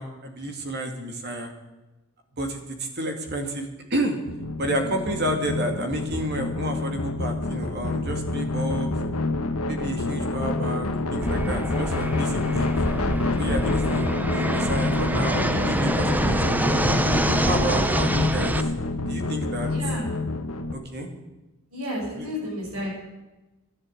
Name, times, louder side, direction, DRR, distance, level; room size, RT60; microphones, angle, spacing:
voice 1, 0.0-1.5 2.4-4.2 4.6-8.9 9.7-12.7 13.4-16.9 17.5-18.5 19.0-19.7 20.7-21.1 22.2-22.3, right 1 dB, 50° right, 4 dB, 2.3 m, -30 dB
sound 1, 4.3-20.7, left 2 dB, 80° left, 1.3 m, -27 dB
Fixed-wing aircraft airplane, 11.2-18.6, right 1 dB, 10° right, 0.6 m, -26 dB
voice 2, 19.6-20.0 21.7-22.9, left 1 dB, 75° right, -5 dB, 6.9 m, -32 dB
12.5 x 11.0 x 7.9 m, 1.1 s
head